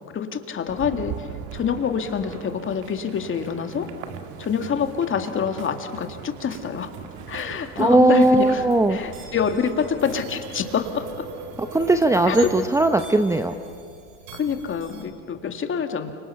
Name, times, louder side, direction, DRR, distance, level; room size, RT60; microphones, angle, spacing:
voice 1, 0.1-3.9 4.4-6.9 7.3-8.6 8.9-11.3 12.3-12.5 14.3-16.1, left 7 dB, 30° left, 6 dB, 2.3 m, -26 dB
sound 1, 0.7-12.7, right 7 dB, 50° right, 2.2 m, -40 dB
voice 2, 7.8-9.0 11.6-13.5, right 2 dB, 10° right, 8 dB, 0.8 m, -18 dB
sound 2, 8.2-15.0, right 3 dB, 70° right, 4.1 m, -41 dB
30.0 x 26.5 x 5.8 m, 2.3 s
hypercardioid pair, 85°, 38 cm